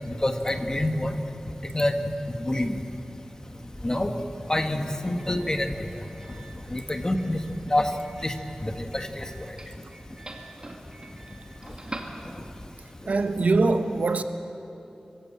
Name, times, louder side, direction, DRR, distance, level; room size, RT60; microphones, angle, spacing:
voice 1, 0.1-1.2 1.7-2.8 3.8-4.2 4.5-5.7 6.7-7.4 7.7-7.9 8.2-8.3 8.6-9.3, left 1 dB, 25° left, 1.6 m, -26 dB
Doorbell, 3.7-12.8, right 2 dB, 35° right, 2.2 m, -46 dB
voice 2, 13.1-14.2, right 3 dB, 70° right, 1.1 m, -22 dB
25.5 x 16.0 x 8.6 m
wide cardioid pair, 80°, 2 cm